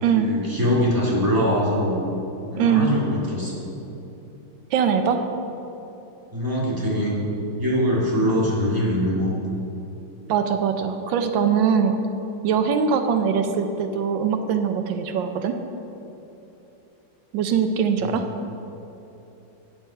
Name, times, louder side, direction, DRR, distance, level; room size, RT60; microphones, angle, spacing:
voice 1, 0.1-2.0 2.5-3.6 6.3-7.1 7.6-9.3 18.0-18.2, equal, 10° right, -6 dB, 1.9 m, -23 dB
voice 2, 2.6-2.9 4.7-5.2 10.3-11.9 12.4-15.5 17.3-18.2, right 7 dB, 90° right, 7 dB, 1.4 m, -22 dB
9.2 x 7.3 x 5.6 m, 3.0 s
omnidirectional pair, 2.0 m